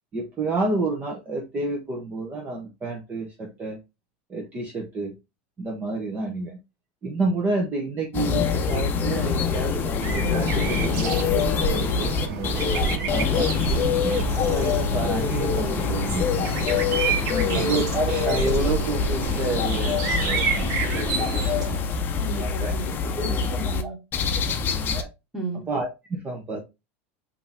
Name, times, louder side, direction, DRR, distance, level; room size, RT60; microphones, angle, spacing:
voice 1, 0.1-3.8 4.3-5.1 5.6-6.6 7.0-12.7 13.1-14.2 14.5-16.6 17.5-21.9 22.4-22.7 23.2-23.3 23.8-23.9 24.5-25.1 25.7-26.6, right 2 dB, 25° right, 1.2 m, -30 dB
sound 1, 8.1-23.8 24.1-25.0, left 6 dB, 30° left, 0.7 m, -25 dB
sound 2, 10.0-21.8, right 4 dB, 55° right, 1.5 m, -29 dB
voice 2, 17.3-17.7 22.2-24.0 25.3-25.6, right 1 dB, ahead, 1.9 m, -33 dB
5.1 x 2.9 x 3.4 m
supercardioid pair, 125°, 6 cm